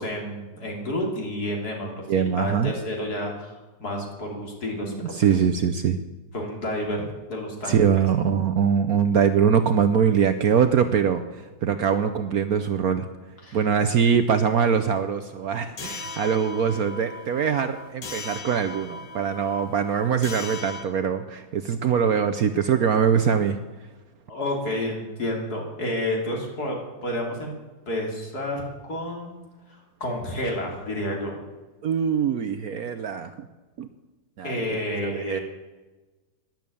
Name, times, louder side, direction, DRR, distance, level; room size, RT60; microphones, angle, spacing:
voice 1, 0.0-5.3 6.3-7.0 7.3-7.8 13.4-13.6 24.3-27.6 27.9-29.4 29.7-31.3 34.4-35.4, left 1 dB, 55° left, 0 dB, 3.6 m, -30 dB
voice 2, 2.1-2.7 4.9-6.0 7.7-13.1 13.5-23.6 31.8-33.3 33.8-33.9 34.4-34.6 35.0-35.4, right 7 dB, 60° right, 9 dB, 1.1 m, -23 dB
sound 1, 15.8-20.8, left 3 dB, 80° left, 2.0 m, -38 dB
12.0 x 11.0 x 8.6 m, 1.2 s
omnidirectional pair, 2.0 m